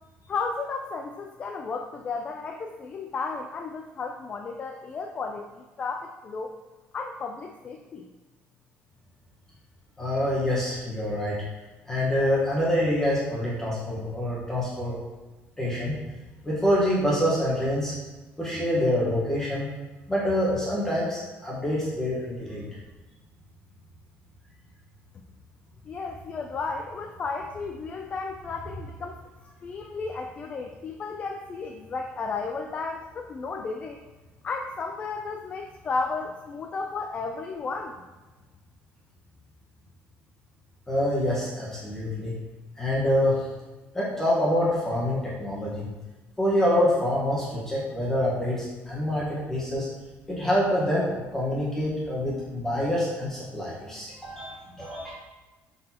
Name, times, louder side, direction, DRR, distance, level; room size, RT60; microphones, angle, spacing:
voice 1, 0.3-6.5 6.9-8.1 25.9-29.2 29.6-34.0 34.4-38.0, left 4 dB, 30° left, 4 dB, 0.4 m, -33 dB
voice 2, 10.0-11.4 11.9-14.9 15.6-16.0 16.4-18.0 18.4-19.6 20.1-22.6 40.9-42.3 42.8-43.4 43.9-45.9 46.4-49.9 50.3-55.1, left 1 dB, 10° left, -6 dB, 1.2 m, -26 dB
8.6 x 4.0 x 2.9 m, 1.2 s
cardioid pair, 160°, 4 cm